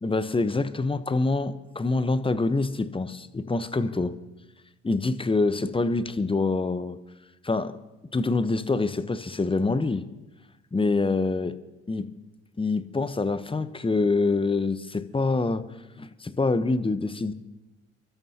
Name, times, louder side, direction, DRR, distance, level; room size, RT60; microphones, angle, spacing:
voice 1, 0.0-4.2 4.8-7.0 7.4-7.8 8.1-10.0 10.7-11.6 11.9-12.1 12.6-15.7 16.0-17.3, left 3 dB, 15° left, 0.9 m, -25 dB
27.5 x 12.5 x 2.9 m
hypercardioid pair, 50°, 34 cm